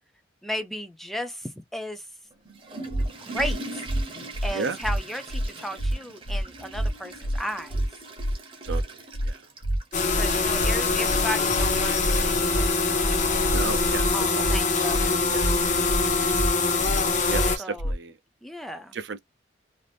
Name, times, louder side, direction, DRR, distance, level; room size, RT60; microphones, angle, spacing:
voice 1, 0.4-2.1 3.2-3.9 4.4-7.8 10.1-12.7 14.1-15.2 17.6-17.9 18.4-18.9, equal, ahead, 0.4 m, -34 dB
Water / Toilet flush, 2.3-10.1, right 2 dB, 25° right, 0.7 m, -41 dB
sound 1, 2.9-3.1 3.4-3.5 3.9-4.0 4.3-4.5 4.8-5.0 5.3-5.5 5.8-5.9 6.3-6.4 6.7-6.9 7.2-7.4 7.7-7.9 8.2-8.3 8.7-8.8 9.1-9.3 9.6-9.8 10.1-10.3 10.6-10.7 11.1-11.2 11.5-11.7 12.0-12.2 12.5-12.7 13.0-13.1 13.5-13.6 13.9-14.1 14.4-14.6 14.9-15.1 15.4-15.5 15.9-16.0 16.3-16.5 16.8-17.0 17.3-17.5 17.8-17.9, right 1 dB, 75° left, 0.8 m, -26 dB
sound 2, 9.9-17.6, left 3 dB, 40° left, 0.6 m, -24 dB
voice 2, 13.5-14.0 14.3-14.4 15.3-15.4 17.3-18.1 19.1-19.2, right 4 dB, 60° right, 0.5 m, -31 dB
2.6 x 2.4 x 3.3 m
head